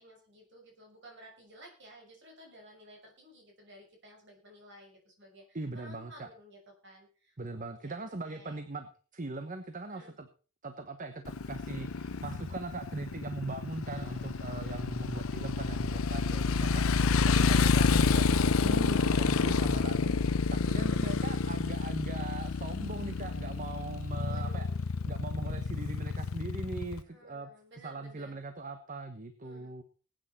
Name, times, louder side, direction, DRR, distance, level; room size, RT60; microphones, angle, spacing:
voice 1, 0.0-8.6 9.9-10.2 13.8-14.6 16.6-18.2 24.2-24.8 27.1-28.4 29.4-29.7, equal, 60° right, 1 dB, 6.2 m, -55 dB
voice 2, 5.5-6.3 7.4-10.3 10.6-20.2 20.5-24.7 25.1-27.5 27.8-29.8, right 2 dB, 40° right, 8 dB, 1.1 m, -40 dB
Motorcycle, 11.3-27.0, left 4 dB, 90° left, 0.7 m, -29 dB
sound 1, 14.1-26.5, equal, 10° left, 2.9 m, -59 dB
19.5 x 9.2 x 4.3 m, 0.38 s
head